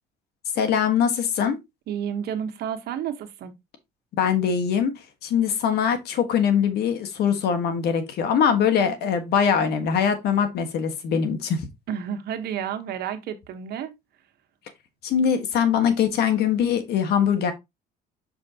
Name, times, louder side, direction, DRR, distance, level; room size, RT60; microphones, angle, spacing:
voice 1, 0.5-1.6 4.2-4.9 5.2-11.6 15.0-17.5, left 7 dB, 75° left, 1.5 m, -22 dB
voice 2, 1.9-3.5 11.9-13.9, right 8 dB, 70° right, 1.3 m, -31 dB
6.3 x 5.5 x 2.8 m
cardioid pair, 110°, 17 cm